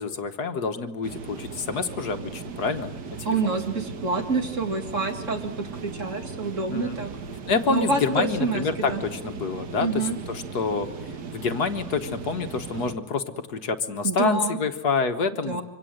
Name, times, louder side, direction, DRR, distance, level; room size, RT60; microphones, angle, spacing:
voice 1, 0.0-2.9 3.2-3.5 6.7-7.0 7.5-10.9 11.3-15.6, left 4 dB, 60° left, 7 dB, 1.7 m, -27 dB
sound 1, 1.0-13.0, right 5 dB, 70° right, 2.1 m, -37 dB
voice 2, 3.2-7.1 7.7-9.0 9.8-10.2 14.0-14.6 15.5-15.6, right 3 dB, 40° right, 5 dB, 2.6 m, -27 dB
26.0 x 25.0 x 7.8 m, 0.86 s
omnidirectional pair, 2.0 m